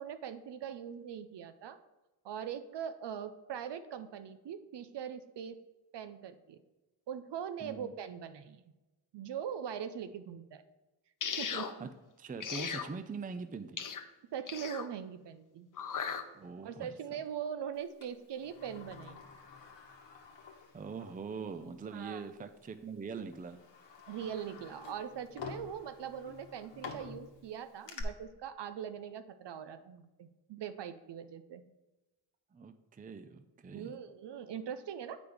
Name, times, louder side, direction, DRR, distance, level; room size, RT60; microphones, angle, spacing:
voice 1, 0.0-1.8 2.2-5.6 5.9-6.6 7.1-8.7 9.1-10.6 11.4-11.9 14.3-15.7 16.6-19.2 21.9-22.3 24.1-31.6 33.7-35.2, right 8 dB, 55° right, 10 dB, 0.6 m, -41 dB
voice 2, 7.6-7.9 11.8-11.9 12.2-13.8 16.3-16.9 20.7-23.6 32.5-34.0, right 5 dB, 20° right, 10 dB, 0.5 m, -43 dB
sound 1, 11.2-11.7 12.4-12.9 13.8-14.0 14.5-14.9 15.8-16.2, left 7 dB, 40° left, 0.7 m, -37 dB
Sliding door, 18.0-21.2 21.6-21.7 22.6-22.8 23.3-28.0, left 5 dB, 60° left, 1.2 m, -49 dB
7.8 x 5.1 x 3.5 m, 1.1 s
supercardioid pair, 45°, 49 cm